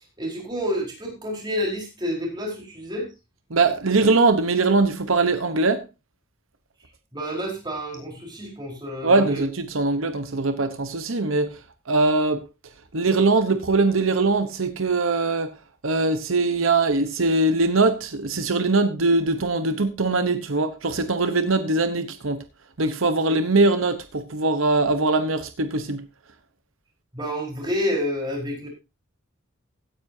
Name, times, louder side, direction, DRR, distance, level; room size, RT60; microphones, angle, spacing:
voice 1, 0.2-3.1 7.1-9.4 27.1-28.7, equal, 20° right, 4.5 m, -29 dB
voice 2, 3.5-5.8 9.0-11.6 11.9-12.4 12.9-15.5 15.8-22.4 22.8-26.0, right 3 dB, 80° right, 1.0 m, -21 dB
16.5 x 9.6 x 2.7 m
head